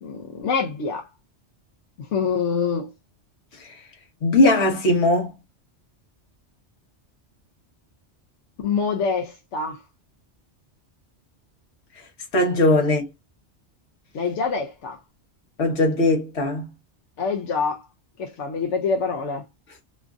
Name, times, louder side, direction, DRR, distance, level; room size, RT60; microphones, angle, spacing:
voice 1, 0.0-1.1 2.1-2.9 8.6-9.8 14.1-15.0 17.2-17.8 18.2-19.4, left 5 dB, 90° left, 1.0 m, -25 dB
voice 2, 4.2-5.3 12.3-13.1 15.6-16.7, left 2 dB, 65° left, 1.4 m, -19 dB
3.1 x 2.5 x 2.3 m
omnidirectional pair, 1.2 m